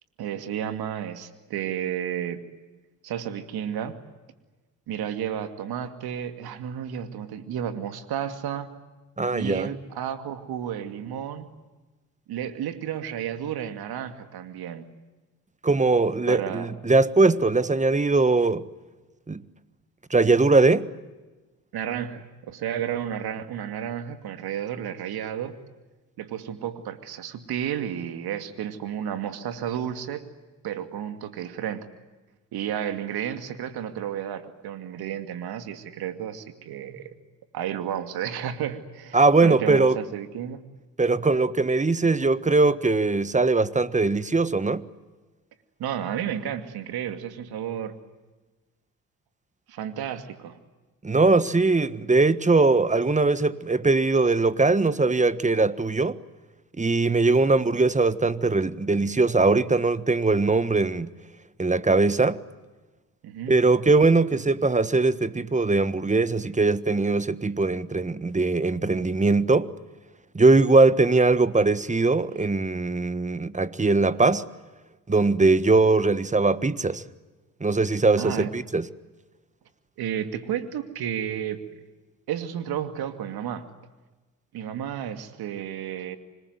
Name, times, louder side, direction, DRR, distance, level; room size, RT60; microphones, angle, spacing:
voice 1, 0.2-2.4 3.0-4.0 4.9-8.7 9.3-11.5 12.3-14.8 16.3-16.7 21.7-25.6 26.2-30.2 30.6-31.9 32.5-37.1 37.5-40.6 45.8-48.0 49.7-50.6 63.2-63.6 78.2-78.5 80.0-81.6 82.3-83.7 84.5-86.2, right 9 dB, 70° right, 2.5 m, -32 dB
voice 2, 9.2-9.7 15.6-18.7 19.3-19.4 20.1-20.9 39.1-40.0 41.0-44.8 51.0-56.2 56.8-61.1 61.6-62.4 63.5-69.7 70.3-74.4 75.1-77.0 77.6-78.9, right 3 dB, 20° right, 1.5 m, -21 dB
26.0 x 21.0 x 9.6 m
supercardioid pair, 55°, 39 cm